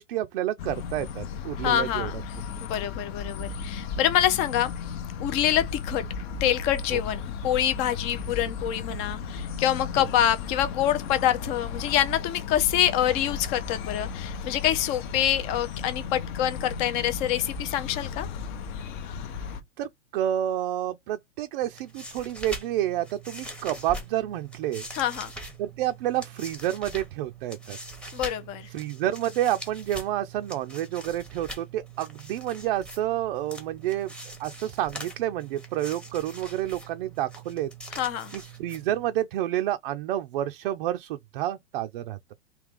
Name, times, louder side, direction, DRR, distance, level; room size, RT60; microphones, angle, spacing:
voice 1, 0.0-2.1 6.9-7.0 19.8-24.9 25.6-27.8 28.7-34.1 34.4-37.7 38.3-42.2, right 12 dB, 45° right, 0.5 m, -29 dB
sound 1, 0.6-19.6, left 5 dB, 40° left, 0.7 m, -35 dB
voice 2, 1.6-2.2 2.6-4.9 5.2-6.0 6.4-18.3 24.9-25.3 28.1-28.7 37.9-38.3, left 11 dB, 20° left, 0.4 m, -26 dB
sound 2, 21.6-39.2, right 2 dB, 5° left, 0.8 m, -42 dB
3.3 x 2.9 x 3.4 m
hypercardioid pair, 135°, 38 cm